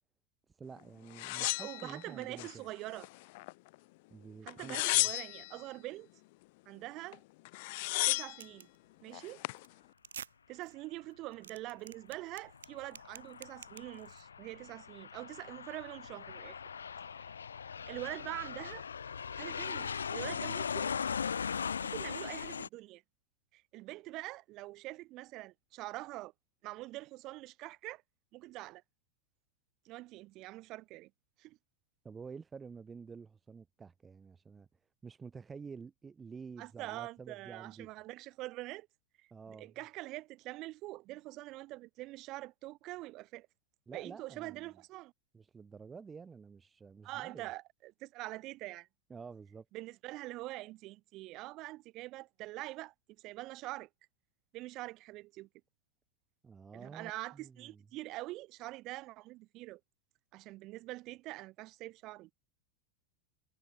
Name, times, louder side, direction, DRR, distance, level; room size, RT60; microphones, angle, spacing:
voice 1, 0.6-2.6 4.1-5.1 32.0-34.7 35.0-37.9 39.3-39.8 43.9-44.7 45.3-47.5 49.1-49.7 56.4-57.8, right 5 dB, 15° right, 3.3 m, -49 dB
sound 1, 1.2-2.5 3.0-3.7 4.5-5.6 7.1-7.2 7.4-8.4 9.1-9.6, left 24 dB, 50° left, 0.4 m, -33 dB
voice 2, 1.4-3.1 4.4-6.1 6.7-7.2 8.1-8.7 9.0-9.4 10.5-16.6 17.2-17.3 17.9-18.8 19.3-21.0 21.8-23.0 23.5-26.3 26.6-28.0 28.3-28.8 29.8-31.1 31.4-31.6 36.6-38.9 39.5-43.5 43.9-45.1 47.0-48.9 49.7-53.9 54.5-55.5 56.7-59.8 60.3-62.3, right 19 dB, 40° right, 5.5 m, -44 dB
sound 2, 8.4-8.8 9.1-9.3 9.6-9.7 10.0-10.3 10.6-10.7 11.1-14.2, right 8 dB, 65° right, 3.1 m, -49 dB
Aircraft, 12.5-22.7, left 6 dB, 70° left, 1.0 m, -39 dB
figure-of-eight pair, 90°, 0 cm